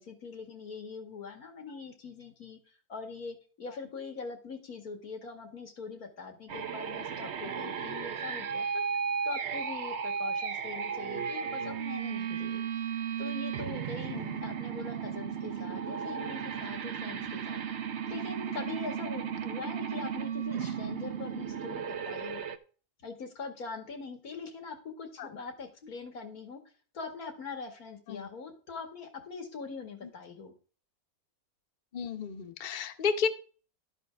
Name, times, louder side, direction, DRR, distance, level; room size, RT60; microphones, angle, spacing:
voice 1, 0.0-8.9 9.2-12.6 13.2-17.6 18.1-22.4 23.0-26.6 26.9-30.5, left 4 dB, 85° left, 5 dB, 2.5 m, -42 dB
sound 1, 6.5-22.6, right 7 dB, 55° right, 1.0 m, -35 dB
voice 2, 14.1-14.5 17.2-17.3 19.2-19.4 25.2-25.3 28.1-28.3 30.0-30.1 31.9-33.3, left 6 dB, 40° left, 7 dB, 1.0 m, -33 dB
12.0 x 9.2 x 3.5 m, 0.39 s
omnidirectional pair, 1.5 m